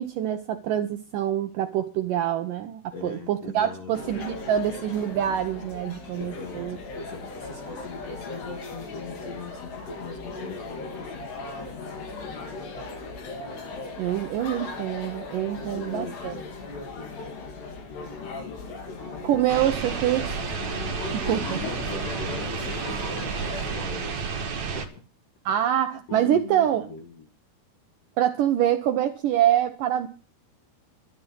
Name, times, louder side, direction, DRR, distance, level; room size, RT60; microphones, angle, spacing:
voice 1, 0.0-6.8 14.0-16.3 19.2-20.4 21.3-21.6 25.5-26.9 28.2-30.1, right 11 dB, 75° right, 2.0 m, -25 dB
voice 2, 2.9-4.2 6.2-13.2 15.5-19.4 21.0-25.0 26.1-27.3, left 4 dB, 55° left, 2.0 m, -41 dB
sound 1, 3.9-23.7, left 3 dB, 75° left, 4.9 m, -38 dB
sound 2, 19.5-24.9, right 5 dB, 50° right, 2.5 m, -31 dB
13.5 x 12.0 x 5.6 m
omnidirectional pair, 4.8 m